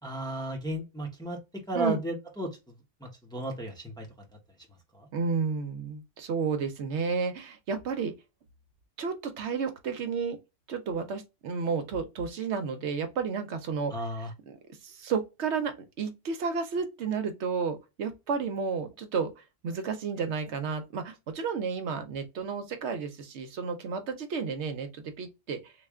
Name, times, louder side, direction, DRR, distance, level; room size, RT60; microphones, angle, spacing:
voice 1, 0.0-2.5 3.0-4.1 4.9-5.1 13.9-14.3, right 1 dB, 5° left, 0.8 m, -34 dB
voice 2, 5.1-8.1 9.0-10.4 10.7-13.9 14.8-25.7, right 5 dB, 70° right, 0.9 m, -32 dB
3.2 x 2.4 x 3.5 m
omnidirectional pair, 1.2 m